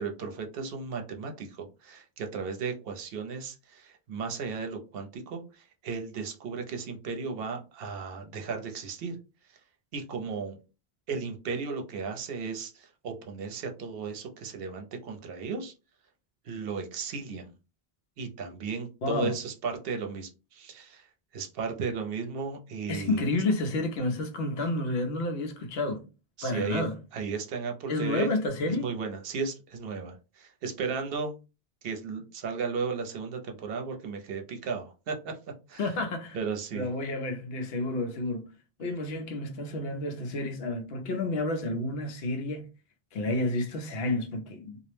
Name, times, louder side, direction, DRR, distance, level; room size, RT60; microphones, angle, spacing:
voice 1, 0.0-9.2 9.9-10.6 11.1-15.7 16.4-17.5 18.2-21.1 21.3-23.2 26.4-26.8 27.1-28.3 28.7-31.4 31.8-35.4 35.7-35.9 36.3-36.9, right 5 dB, 70° right, 0.8 m, -35 dB
voice 2, 19.0-19.3 22.9-26.0 26.4-26.9 27.9-28.9 35.8-36.4 36.7-38.5 38.8-42.7 43.1-44.9, left 2 dB, 75° left, 0.8 m, -30 dB
2.4 x 2.0 x 3.1 m
omnidirectional pair, 1.0 m